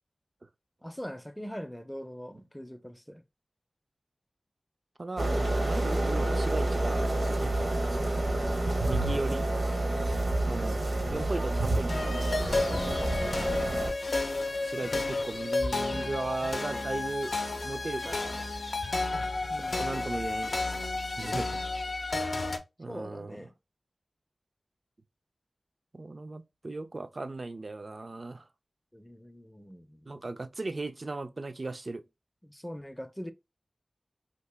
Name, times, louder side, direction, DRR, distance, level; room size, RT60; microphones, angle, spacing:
voice 1, 0.8-3.2 9.3-9.5 10.2-10.3 13.3-13.7 19.5-19.9 22.9-23.5 28.9-30.3 32.4-33.3, equal, 10° left, 0.5 m, -42 dB
voice 2, 5.0-8.5 8.8-9.5 10.5-12.7 14.6-17.3 17.6-18.4 19.5-20.6 21.2-21.6 22.8-23.5 25.9-28.5 30.1-32.0, right 2 dB, 55° right, 0.3 m, -37 dB
sound 1, 5.2-13.9, right 2 dB, 80° right, 0.8 m, -28 dB
sound 2, 11.9-22.6, left 2 dB, 65° left, 0.5 m, -32 dB
2.8 x 2.7 x 3.3 m
cardioid pair, 45°, 0 cm